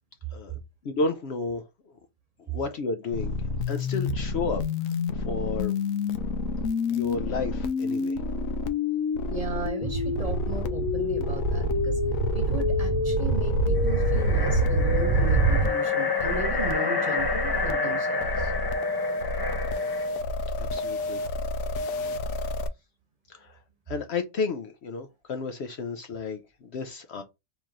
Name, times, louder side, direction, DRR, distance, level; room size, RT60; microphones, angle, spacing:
voice 1, 0.8-2.0 2.4-5.7 6.9-8.2 20.6-21.2 23.3-23.6 23.9-27.2, left 4 dB, 60° left, 0.8 m, -32 dB
sound 1, 3.1-22.7, left 4 dB, 85° left, 1.0 m, -29 dB
voice 2, 9.3-12.0 12.3-18.5, right 3 dB, 30° right, 1.2 m, -36 dB
sound 2, 9.8-15.7, right 3 dB, 85° right, 1.1 m, -25 dB
sound 3, 13.7-20.2, left 3 dB, 30° left, 0.4 m, -30 dB
4.5 x 3.0 x 3.7 m
omnidirectional pair, 1.4 m